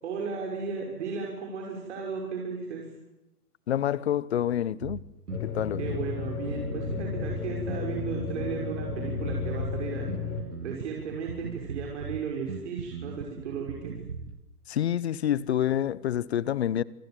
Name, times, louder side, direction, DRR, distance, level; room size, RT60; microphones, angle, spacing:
voice 1, 0.0-2.9 5.8-10.1 10.6-13.9, right 5 dB, 45° right, 6.2 m, -35 dB
voice 2, 3.7-5.0 5.4-5.8 14.7-16.8, left 10 dB, 45° left, 1.0 m, -27 dB
Bass guitar, 4.8-14.4, right 5 dB, 75° right, 2.3 m, -39 dB
sound 1, 5.3-10.4, left 5 dB, 60° left, 6.5 m, -33 dB
28.0 x 23.5 x 7.6 m
hypercardioid pair, 145°, 46 cm